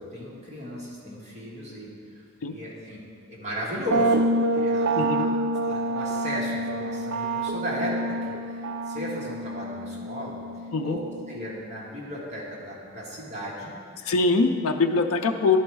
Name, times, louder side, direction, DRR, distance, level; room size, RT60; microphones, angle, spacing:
voice 1, 0.0-1.9 2.1-2.2 2.5-3.0 3.3-4.2 4.5-5.3 5.6-8.1 8.5-10.4 10.8-11.0 11.3-13.7, equal, 30° right, -5 dB, 1.5 m, -35 dB
sound 1, 3.9-11.5, right 1 dB, 60° right, 0.4 m, -27 dB
voice 2, 14.0-15.6, left 3 dB, 70° left, 5 dB, 0.4 m, -23 dB
11.0 x 4.3 x 4.6 m, 2.3 s
head